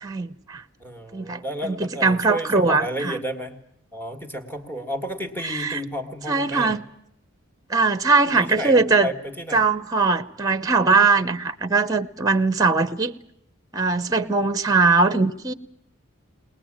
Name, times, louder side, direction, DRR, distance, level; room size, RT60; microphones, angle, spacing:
voice 1, 0.0-0.6 1.1-3.1 5.4-5.8 6.3-6.9 7.7-9.1 9.5-13.1 13.7-15.5, right 4 dB, 15° right, 0.9 m, -21 dB
voice 2, 0.8-3.5 3.9-6.8 8.3-9.7, equal, 10° left, 1.9 m, -32 dB
21.5 x 20.0 x 8.8 m
head